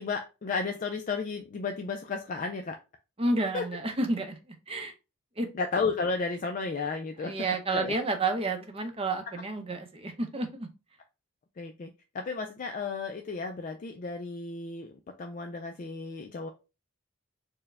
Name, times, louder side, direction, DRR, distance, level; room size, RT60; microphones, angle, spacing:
voice 1, 0.0-2.8 3.5-3.6 5.5-7.3 7.7-8.0 11.6-16.5, left 4 dB, 35° left, 4 dB, 0.3 m, -33 dB
voice 2, 3.2-4.4 4.7-4.9 5.4-5.5 7.2-10.7, right 2 dB, 25° right, 6 dB, 0.6 m, -30 dB
4.5 x 2.1 x 3.3 m, 0.29 s
head